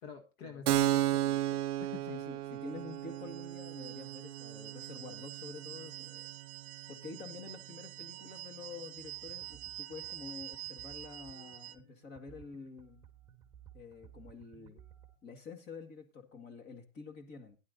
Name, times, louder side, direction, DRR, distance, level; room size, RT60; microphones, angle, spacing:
voice 1, 0.0-2.1, left 6 dB, 45° left, 5 dB, 1.6 m, -48 dB
Keyboard (musical), 0.7-8.0, right 14 dB, 85° right, 0.5 m, -35 dB
voice 2, 2.1-6.3 6.9-13.1 13.7-14.8 15.2-17.6, left 4 dB, 20° left, 6 dB, 1.9 m, -48 dB
sound 1, 2.8-11.8, right 15 dB, 45° right, 0.9 m, -47 dB
sound 2, 9.0-15.2, right 9 dB, 10° right, 2.3 m, -58 dB
17.5 x 11.0 x 2.7 m, 0.30 s
hypercardioid pair, 135°, 45 cm